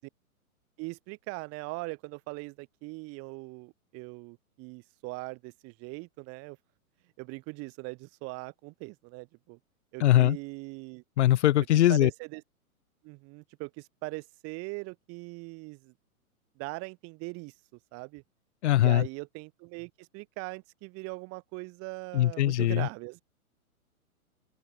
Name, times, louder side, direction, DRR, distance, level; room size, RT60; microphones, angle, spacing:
voice 1, 0.8-6.6 7.2-9.6 9.9-11.0 11.9-12.4 13.0-15.9 16.6-17.5 17.9-18.2 18.8-23.2, right 27 dB, 30° right, 4.6 m, -40 dB
voice 2, 10.0-10.4 11.2-12.1 18.6-19.1 22.1-22.9, left 14 dB, 50° left, 2.5 m, -21 dB
open air
hypercardioid pair, 120°, 44 cm